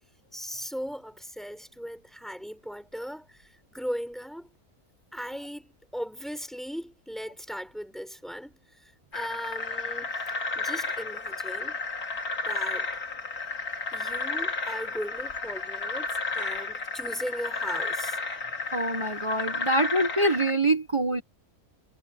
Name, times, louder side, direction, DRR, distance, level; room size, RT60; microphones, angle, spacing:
voice 1, 0.3-4.5 5.1-10.1 10.5-11.8 12.4-12.9 13.9-16.1 16.3-18.2, equal, ahead, 6.8 m, -38 dB
sound 1, 9.1-20.5, left 3 dB, 85° left, 3.2 m, -32 dB
voice 2, 18.7-21.2, right 1 dB, 20° right, 1.4 m, -25 dB
omnidirectional pair, 1.5 m